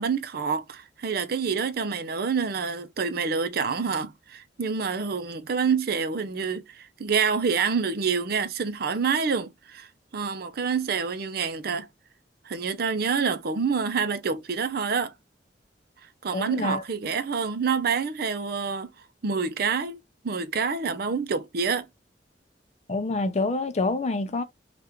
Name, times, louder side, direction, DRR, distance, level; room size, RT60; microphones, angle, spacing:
voice 1, 0.0-9.9 10.1-11.9 12.4-15.1 16.2-18.9 19.2-21.9, right 5 dB, 60° right, 0.6 m, -27 dB
voice 2, 16.3-16.8 22.9-24.4, left 3 dB, 40° left, 0.6 m, -27 dB
3.4 x 2.5 x 2.9 m
head